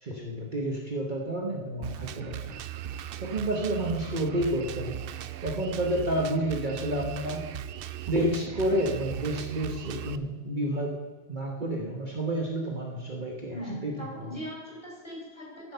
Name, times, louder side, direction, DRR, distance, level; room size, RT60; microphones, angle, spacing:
voice 1, 0.0-2.6 3.2-5.0 5.4-7.4 8.1-11.0 11.3-13.9 14.2-14.3, right 1 dB, 40° right, 0 dB, 1.3 m, -30 dB
Drum kit, 1.8-10.2, right 10 dB, 60° right, 0.6 m, -38 dB
voice 2, 13.5-15.7, equal, 20° left, -4 dB, 4.6 m, -40 dB
14.5 x 7.9 x 5.6 m, 1.3 s
omnidirectional pair, 1.3 m